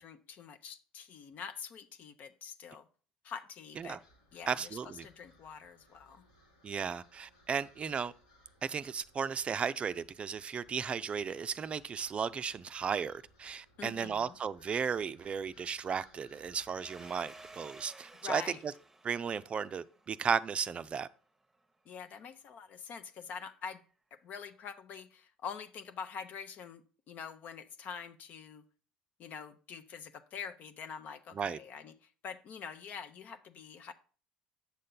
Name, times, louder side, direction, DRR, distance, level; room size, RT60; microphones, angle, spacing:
voice 1, 0.0-2.9 3.2-4.0 4.3-6.2 13.8-14.3 18.2-18.6 21.9-23.8 24.2-28.6 29.2-33.9, left 6 dB, 50° left, 0.8 m, -45 dB
sound 1, 3.7-17.5, equal, 90° left, 1.9 m, -65 dB
voice 2, 4.5-5.1 6.6-8.1 8.6-18.7 19.0-21.1 31.3-31.6, right 6 dB, 35° right, 0.5 m, -35 dB
Domestic sounds home sounds, 16.8-21.2, right 2 dB, 10° right, 0.9 m, -55 dB
8.3 x 6.5 x 3.9 m
hypercardioid pair, 65°, 4 cm